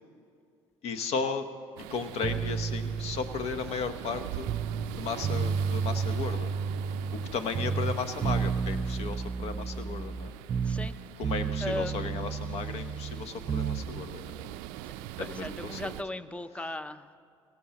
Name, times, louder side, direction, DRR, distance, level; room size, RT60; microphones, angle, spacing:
voice 1, 0.8-1.5 1.9-4.5 5.0-6.5 7.3-10.3 11.2-14.5 15.2-15.9, left 5 dB, 65° left, 9 dB, 1.0 m, -35 dB
sound 1, 1.8-16.0, right 13 dB, 80° right, 0.4 m, -43 dB
sound 2, 2.2-4.9 5.2-7.3 7.5-11.0 11.2-13.9, right 6 dB, 40° right, 0.7 m, -32 dB
voice 2, 10.6-10.9 11.6-12.2 15.2-17.2, left 1 dB, 10° left, 13 dB, 0.6 m, -37 dB
17.5 x 17.0 x 2.9 m, 2.4 s
hypercardioid pair, 65°, 12 cm